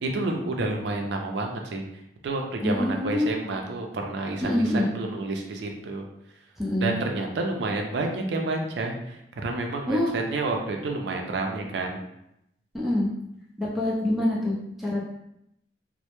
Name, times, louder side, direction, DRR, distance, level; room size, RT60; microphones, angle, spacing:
voice 1, 0.0-1.8 2.2-6.1 6.8-12.0, right 2 dB, 75° right, 2 dB, 0.4 m, -29 dB
voice 2, 2.6-3.3 4.4-4.9 6.6-6.9 9.9-10.1 12.7-13.1 13.6-15.0, left 1 dB, ahead, -5 dB, 0.5 m, -25 dB
2.1 x 2.0 x 2.9 m, 0.80 s
head